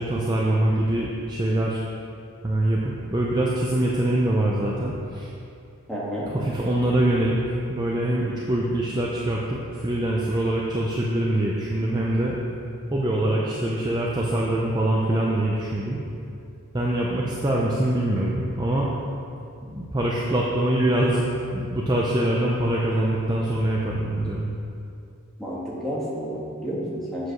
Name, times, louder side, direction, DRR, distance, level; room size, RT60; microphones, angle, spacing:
voice 1, 0.0-1.8 2.4-5.3 6.3-12.4 12.9-16.0 16.7-18.9 19.7-24.5, right 1 dB, 20° right, -4 dB, 0.6 m, -24 dB
voice 2, 5.9-6.3 25.4-27.3, equal, ahead, -8 dB, 1.7 m, -30 dB
8.1 x 5.0 x 6.3 m, 2.5 s
head